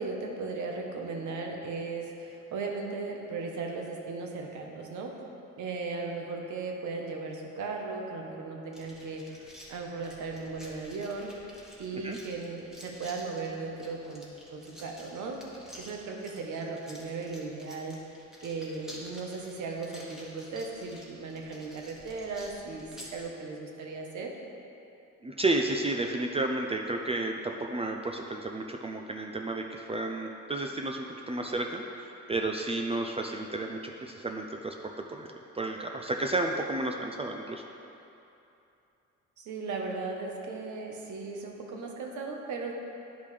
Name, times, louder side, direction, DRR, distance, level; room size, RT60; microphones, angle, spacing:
voice 1, 0.0-5.2 5.6-11.3 11.8-14.2 14.5-15.4 15.7-17.9 18.4-24.4 39.4-42.7, right 3 dB, 75° right, 1 dB, 1.1 m, -37 dB
sound 1, 8.7-23.2, equal, ahead, 1.5 m, -51 dB
voice 2, 25.2-37.6, right 2 dB, 20° right, 2 dB, 0.4 m, -32 dB
10.5 x 5.2 x 3.3 m, 2.8 s
cardioid pair, 90°, 30 cm